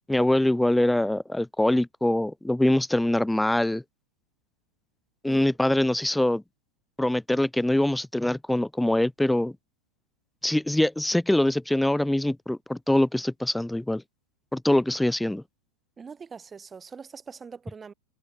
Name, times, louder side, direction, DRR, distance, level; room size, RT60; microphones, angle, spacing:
voice 1, 0.0-3.8 5.2-6.4 7.0-9.5 10.4-14.0 14.5-15.4, left 1 dB, 5° left, 1.4 m, -24 dB
voice 2, 16.0-17.9, right 5 dB, 15° right, 2.2 m, -43 dB
figure-of-eight pair, 90°, 0 cm